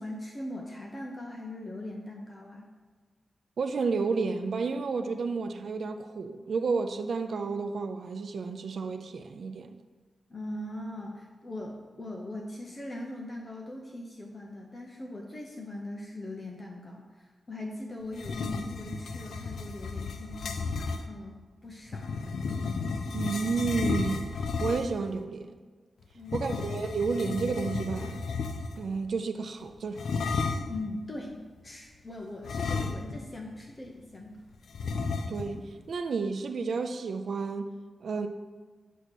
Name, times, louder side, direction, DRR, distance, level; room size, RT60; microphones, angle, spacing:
voice 1, 0.0-2.7 10.3-22.5 26.1-26.7 30.7-31.4 31.6-34.4, left 1 dB, 25° left, 0.6 m, -40 dB
voice 2, 3.6-9.8 23.1-25.6 26.3-28.3 28.8-30.0 35.3-38.3, right 4 dB, 65° right, 0.3 m, -31 dB
sound 1, 18.1-21.1 21.9-25.1 26.2-28.9 30.0-30.8 32.4-33.4 33.7-33.8 34.7-35.6, left 4 dB, 85° left, 0.4 m, -33 dB
8.1 x 2.8 x 6.0 m
wide cardioid pair, 155°, 0 cm